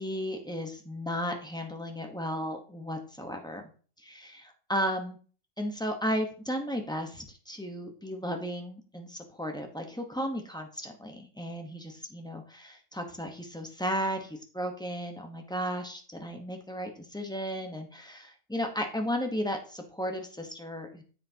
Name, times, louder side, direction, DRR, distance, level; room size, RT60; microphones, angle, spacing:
voice 1, 0.0-3.6 4.0-5.2 5.6-21.0, equal, 5° left, 3 dB, 1.0 m, -34 dB
9.7 x 7.8 x 2.9 m, 0.41 s
omnidirectional pair, 1.4 m